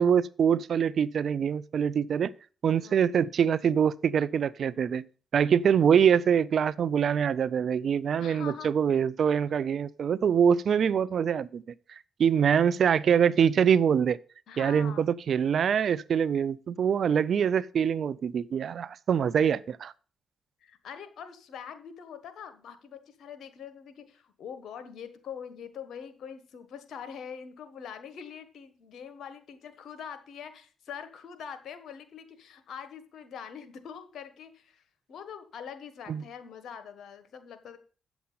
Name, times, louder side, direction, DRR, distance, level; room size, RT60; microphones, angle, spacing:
voice 1, 0.0-2.3 2.6-5.0 5.3-11.6 12.2-14.2 14.6-19.9 36.1-36.2, right 7 dB, 70° right, 0.4 m, -24 dB
voice 2, 2.7-3.1 8.2-8.7 14.5-15.1 20.6-34.8 35.1-37.8, left 7 dB, 75° left, 1.3 m, -44 dB
8.5 x 7.1 x 5.6 m
supercardioid pair, 55°, 0 cm